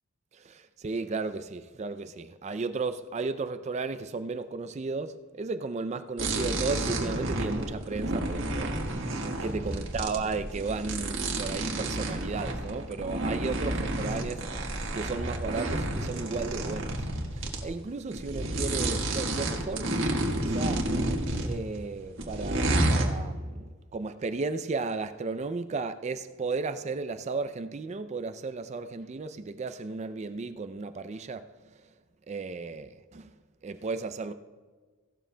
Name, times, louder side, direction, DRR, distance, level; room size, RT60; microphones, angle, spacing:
voice 1, 0.3-8.8 9.4-17.1 17.3-19.9 20.4-20.9 21.4-31.7 32.3-33.3 33.6-34.3, right 4 dB, 30° right, 0.4 m, -34 dB
sound 1, 6.2-17.6 18.1-21.8 22.2-23.1, right 1 dB, 60° right, 1.5 m, -30 dB
16.5 x 12.5 x 2.2 m
head